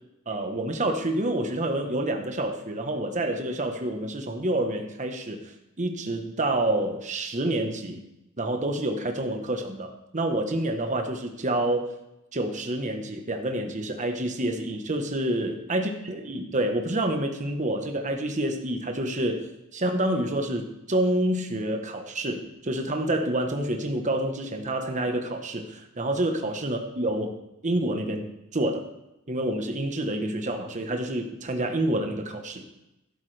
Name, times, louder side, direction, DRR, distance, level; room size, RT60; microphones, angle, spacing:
voice 1, 0.3-5.4 5.8-8.0 8.4-11.9 12.3-19.4 19.7-27.4 27.6-28.9 29.3-32.6, right 1 dB, 35° right, 4 dB, 1.1 m, -28 dB
12.0 x 11.5 x 3.4 m, 0.91 s
head